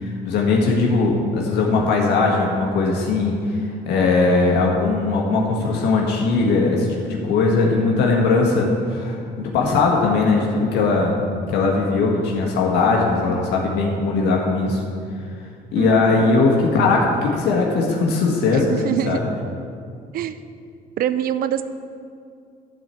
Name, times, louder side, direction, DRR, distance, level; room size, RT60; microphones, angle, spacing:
voice 1, 0.0-3.6 3.9-11.2 11.5-14.8 15.7-19.3, left 3 dB, 80° left, -1 dB, 1.6 m, -19 dB
voice 2, 15.8-16.2 18.5-19.2 20.1-20.4 21.0-21.6, right 11 dB, 60° right, 13 dB, 0.6 m, -24 dB
12.5 x 4.5 x 8.3 m, 2.4 s
cardioid pair, 110°, 17 cm